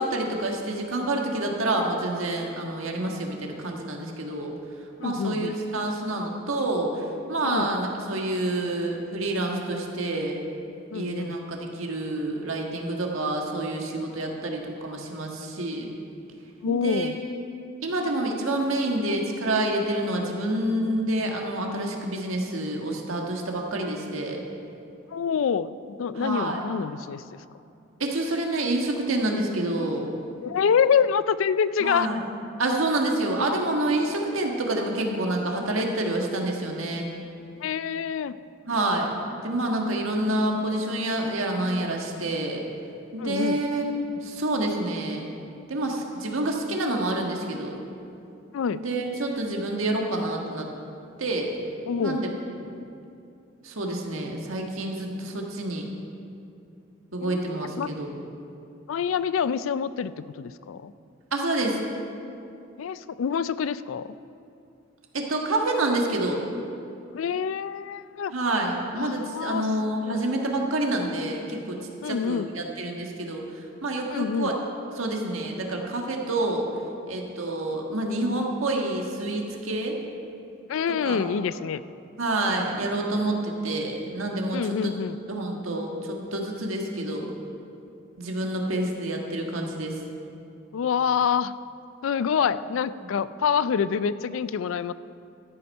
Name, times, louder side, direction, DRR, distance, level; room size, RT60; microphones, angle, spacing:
voice 1, 0.0-4.6 5.0-10.4 10.9-15.9 16.6-17.1 17.8-24.4 26.1-26.6 28.0-30.0 31.8-32.2 32.6-37.1 38.7-42.6 43.1-45.2 45.7-47.8 48.7-50.7 51.2-51.5 52.0-52.3 52.6-52.7 53.6-55.9 57.1-58.2 61.3-61.8 65.1-66.4 68.3-73.4 73.8-74.5 74.9-76.7 77.1-80.0 81.0-81.2 82.2-84.9 85.3-87.3 88.2-90.0, right 1 dB, 85° right, 1 dB, 1.6 m, -28 dB
voice 2, 5.0-5.6 7.4-7.7 10.9-11.4 16.6-17.2 25.1-27.2 30.4-32.1 37.6-38.4 43.2-43.6 48.5-48.8 51.9-52.2 57.2-57.5 57.8-57.9 58.9-60.9 62.8-64.1 67.1-68.3 69.0-69.7 70.0-70.2 72.0-72.5 74.1-74.5 80.7-81.8 84.5-85.2 90.7-91.5 92.0-94.9, left 7 dB, 75° left, 16 dB, 0.3 m, -26 dB
13.0 x 8.4 x 5.4 m, 2.6 s
head